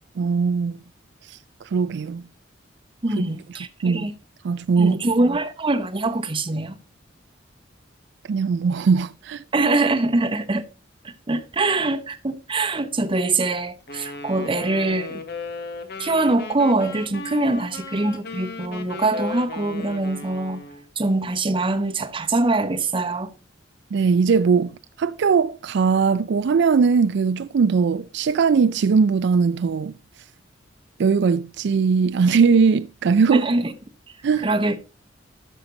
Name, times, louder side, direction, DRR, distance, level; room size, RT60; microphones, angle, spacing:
voice 1, 0.2-0.8 1.3-1.4 1.6-2.2 3.8-4.1 4.4-5.0 8.3-9.4 23.9-29.9 31.0-33.5 34.2-34.5, right 5 dB, 65° right, 0.4 m, -20 dB
voice 2, 3.0-4.1 4.8-6.7 9.5-10.6 11.0-15.2 16.0-20.6 21.0-23.3 33.3-33.7 34.4-34.8, right 2 dB, 25° right, 0.8 m, -23 dB
Wind instrument woodwind instrument, 13.9-20.8, left 3 dB, 60° left, 1.3 m, -36 dB
11.5 x 6.6 x 3.9 m
head